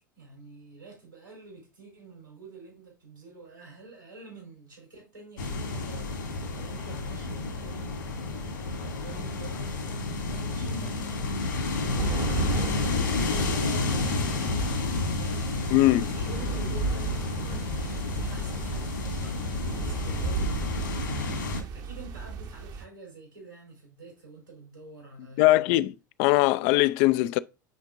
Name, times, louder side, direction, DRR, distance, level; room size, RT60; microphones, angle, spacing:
voice 1, 0.1-8.0 8.7-25.7, right 3 dB, 90° right, 4.7 m, -48 dB
sound 1, 5.4-21.6, left 3 dB, 75° left, 2.3 m, -30 dB
sound 2, 12.0-22.9, right 5 dB, 35° right, 0.9 m, -35 dB
voice 2, 15.7-16.1 25.4-25.9 26.2-27.4, left 17 dB, 50° left, 0.4 m, -21 dB
11.0 x 4.4 x 2.5 m
figure-of-eight pair, 80°, 11 cm